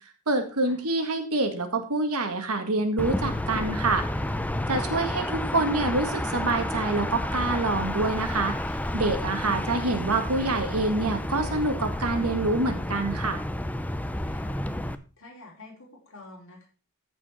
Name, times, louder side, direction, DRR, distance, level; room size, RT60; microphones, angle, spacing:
voice 1, 0.3-4.0 4.7-13.4, right 2 dB, 75° right, 6 dB, 1.9 m, -26 dB
sound 1, 3.0-14.9, left 1 dB, 5° left, 0.5 m, -30 dB
voice 2, 14.3-14.7 15.2-16.7, left 2 dB, 65° left, -2 dB, 4.6 m, -49 dB
14.0 x 5.2 x 4.9 m, 0.36 s
head